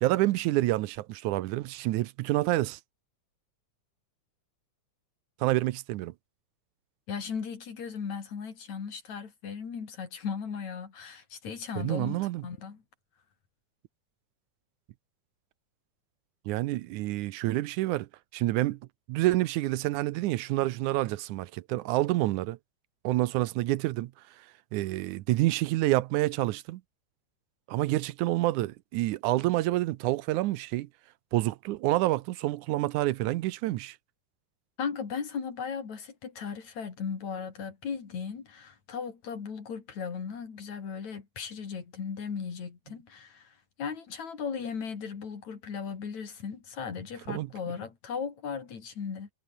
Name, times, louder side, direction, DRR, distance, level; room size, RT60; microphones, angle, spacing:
voice 1, 0.0-2.8 5.4-6.1 11.8-12.4 16.5-18.1 18.3-18.8 19.1-22.6 23.0-24.1 24.7-26.8 27.7-30.9 31.3-34.0 47.3-47.5, right 17 dB, 85° right, 2.1 m, -28 dB
voice 2, 7.1-12.8 34.8-49.3, left 6 dB, 65° left, 4.6 m, -37 dB
omnidirectional pair, 3.5 m